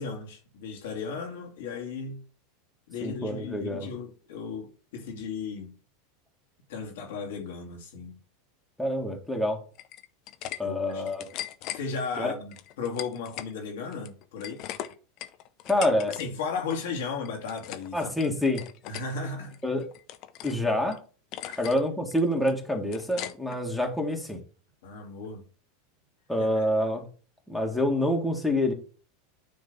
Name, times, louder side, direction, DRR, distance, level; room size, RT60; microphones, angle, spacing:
voice 1, 0.0-2.2 2.9-5.7 6.7-8.2 10.6-11.0 11.7-14.6 16.1-18.3 18.9-19.6 21.4-21.7 24.8-25.4 26.4-26.7, left 5 dB, 75° left, 2.0 m, -35 dB
voice 2, 3.0-3.9 8.8-9.6 10.6-11.2 12.2-12.3 15.7-16.1 17.9-18.6 19.6-19.8 20.4-21.0 21.6-24.4 26.3-27.0 27.5-28.7, left 1 dB, 5° left, 1.8 m, -27 dB
sound 1, 9.8-10.6 10.9-11.8 12.5-13.5 13.9-16.3 16.5-16.8 17.2-17.9 18.2-19.1 19.5-20.6 20.9-21.0 21.3-21.8 22.1-23.6, left 12 dB, 55° left, 0.6 m, -39 dB
9.5 x 3.2 x 5.3 m
hypercardioid pair, 100°, 0 cm